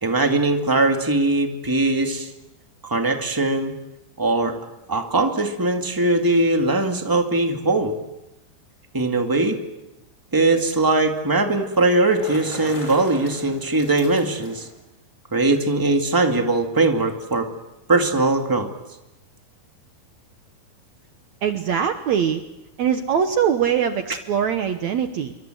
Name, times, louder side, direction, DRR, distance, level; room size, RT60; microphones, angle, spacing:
voice 1, 0.0-2.3 2.8-3.7 4.2-4.5 4.9-7.9 8.9-9.6 10.3-14.7 15.3-17.5 17.9-18.7, right 2 dB, 10° right, 4 dB, 0.9 m, -20 dB
Bicycle, 11.9-14.7, left 1 dB, 20° left, 6.1 m, -39 dB
voice 2, 21.4-22.4 22.8-25.3, right 8 dB, 65° right, 8 dB, 1.9 m, -22 dB
27.5 x 24.0 x 7.9 m, 0.99 s
omnidirectional pair, 4.4 m